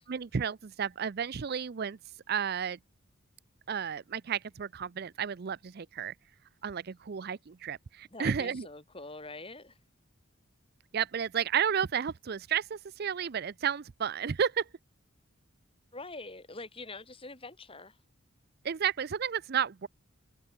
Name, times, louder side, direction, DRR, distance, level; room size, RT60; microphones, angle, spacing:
voice 1, 0.1-2.0 2.3-2.8 3.7-6.1 6.6-8.7 10.9-14.7 18.6-19.9, right 7 dB, 50° right, 0.5 m, -32 dB
voice 2, 8.1-9.8 15.9-18.0, left 2 dB, 25° left, 3.5 m, -44 dB
head